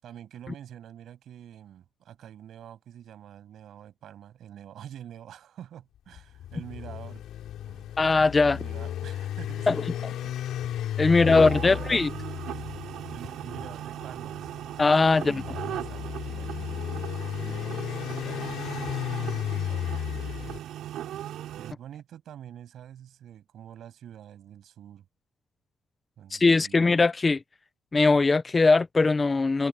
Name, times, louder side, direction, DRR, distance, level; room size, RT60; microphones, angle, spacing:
voice 1, 0.0-7.2 7.7-7.9 8.4-10.3 11.1-12.0 12.5-12.7 13.1-14.6 15.0-20.4 21.5-25.1 26.2-26.9, right 10 dB, 65° right, 7.9 m, -46 dB
sound 1, 6.1-20.6, left 11 dB, 85° left, 3.9 m, -34 dB
voice 2, 8.0-8.6 9.7-9.8 11.0-12.1 14.8-15.4 26.3-27.4 27.9-29.7, left 3 dB, 20° left, 0.5 m, -20 dB
sound 2, 11.2-21.7, right 12 dB, 90° right, 7.2 m, -38 dB
cardioid pair, 170°, 0 cm